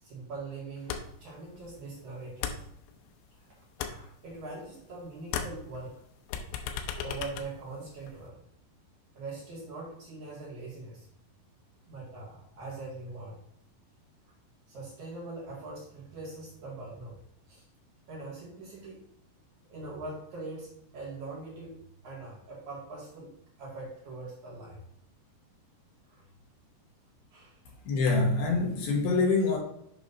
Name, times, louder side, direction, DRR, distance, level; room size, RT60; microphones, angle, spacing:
voice 1, 0.0-2.6 3.4-3.5 3.9-5.9 7.0-8.4 9.1-11.1 11.9-13.4 14.7-17.2 17.5-17.6 18.1-19.0 19.7-21.8 22.0-24.8 26.1-26.2 27.3-27.6, right 3 dB, 55° right, -4 dB, 2.7 m, -42 dB
sound 1, 0.9-1.3 1.6-3.3 3.6-5.0 5.2-8.3, left 7 dB, 90° left, 2.8 m, -37 dB
voice 2, 27.9-29.6, left 3 dB, 70° left, 0 dB, 2.8 m, -25 dB
9.4 x 3.4 x 5.4 m, 0.74 s
omnidirectional pair, 4.9 m